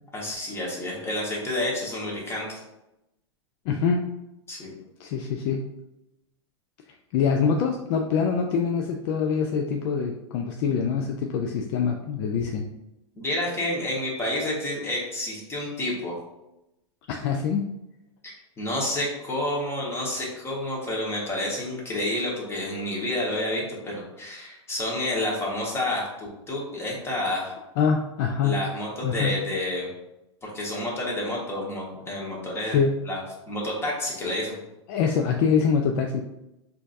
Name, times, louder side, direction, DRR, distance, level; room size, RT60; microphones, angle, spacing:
voice 1, 0.1-2.6 4.5-4.7 13.1-16.1 18.2-27.5 28.4-29.9 30.4-33.2 33.5-34.5, left 1 dB, 15° left, -4 dB, 1.3 m, -29 dB
voice 2, 3.7-4.1 5.0-5.6 7.1-12.7 17.1-17.7 27.8-28.6 29.0-29.4 32.7-32.9 34.9-36.2, left 6 dB, 50° left, 3 dB, 0.4 m, -24 dB
4.3 x 2.7 x 2.6 m, 0.91 s
hypercardioid pair, 110°, 15 cm